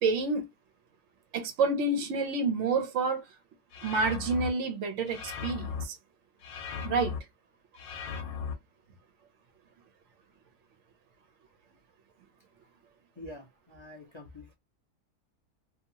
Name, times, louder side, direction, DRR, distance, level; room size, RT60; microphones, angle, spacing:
voice 1, 0.0-0.4 1.3-3.2 3.8-6.0 6.8-7.1, right 3 dB, 65° right, 0.8 m, -28 dB
sound 1, 3.7-4.5 5.1-5.9 6.4-7.2 7.8-8.5, left 6 dB, 70° left, 1.1 m, -37 dB
voice 2, 13.2-14.5, left 1 dB, 45° left, 0.3 m, -46 dB
2.8 x 2.3 x 2.7 m
omnidirectional pair, 1.6 m